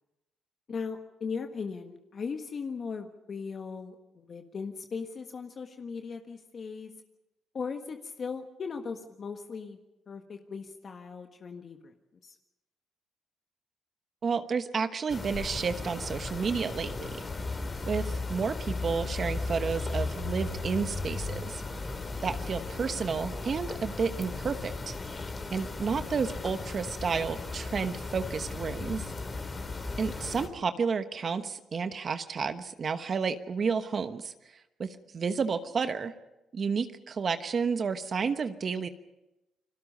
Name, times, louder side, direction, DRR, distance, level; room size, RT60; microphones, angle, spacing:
voice 1, 0.7-6.9 7.5-9.8 10.1-11.9 12.2-12.4, left 5 dB, 45° left, 5 dB, 1.5 m, -38 dB
voice 2, 14.2-17.2 17.9-21.6 22.2-25.0 25.5-29.1 30.0-36.1 36.5-38.9, right 5 dB, 45° right, 9 dB, 1.2 m, -31 dB
sound 1, 15.1-30.5, left 3 dB, 30° left, 3.1 m, -36 dB
29.5 x 21.0 x 5.4 m, 0.95 s
cardioid pair, 90°, 0 cm